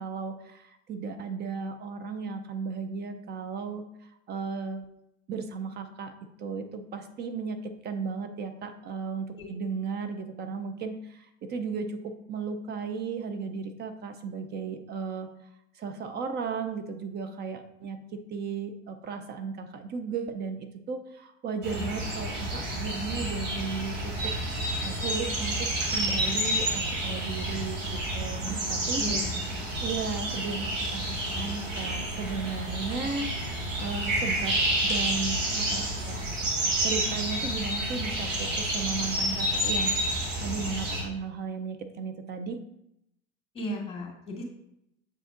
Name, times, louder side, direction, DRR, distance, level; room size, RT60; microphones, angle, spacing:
voice 1, 0.0-3.8 4.3-4.8 5.3-6.1 6.4-15.3 15.8-24.1 24.6-27.8 28.1-29.0 29.8-33.3 33.8-34.5 34.8-36.3 36.8-40.0 40.4-42.6, right 5 dB, 30° right, 8 dB, 0.5 m, -35 dB
sound 1, 21.6-41.0, right 1 dB, 85° right, 1.9 m, -29 dB
voice 2, 29.0-29.3 43.5-44.4, left 1 dB, 15° left, -2 dB, 2.2 m, -35 dB
7.5 x 4.9 x 2.5 m, 0.80 s
hypercardioid pair, 95°, 37 cm